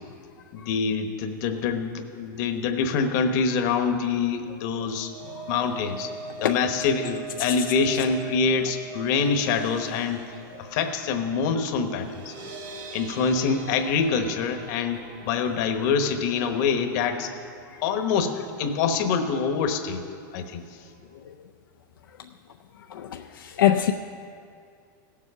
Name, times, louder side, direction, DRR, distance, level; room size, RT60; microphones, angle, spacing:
voice 1, 0.5-5.1 5.5-6.1 6.4-10.2 10.7-12.3 12.9-17.3 17.8-20.0 20.3-20.6, left 5 dB, 60° left, 7 dB, 1.1 m, -25 dB
sound 1, 4.6-18.8 19.2-19.4 19.7-19.8, right 4 dB, 75° right, 2.8 m, -42 dB
voice 2, 22.9-23.9, left 11 dB, 90° left, 5 dB, 0.5 m, -23 dB
16.5 x 7.4 x 5.6 m, 2.3 s
hypercardioid pair, 120°, 11 cm